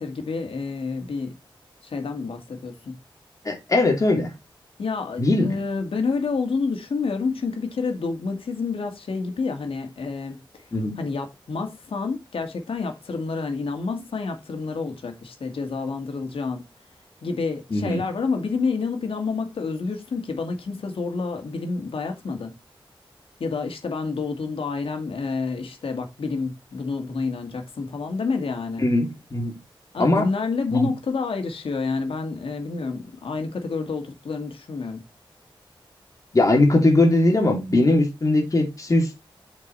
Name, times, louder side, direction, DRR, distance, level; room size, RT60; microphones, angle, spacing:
voice 1, 0.0-1.4 1.8-3.0 4.8-10.4 11.0-16.7 17.2-22.5 23.4-28.8 29.9-35.0, left 4 dB, 85° left, 2.2 m, -28 dB
voice 2, 3.4-4.3 5.2-5.5 10.7-10.9 17.7-18.0 28.8-29.6 30.0-30.3 30.7-30.9 36.3-39.2, left 2 dB, 40° left, 3.2 m, -20 dB
8.0 x 5.3 x 4.2 m
wide cardioid pair, 125°, 9 cm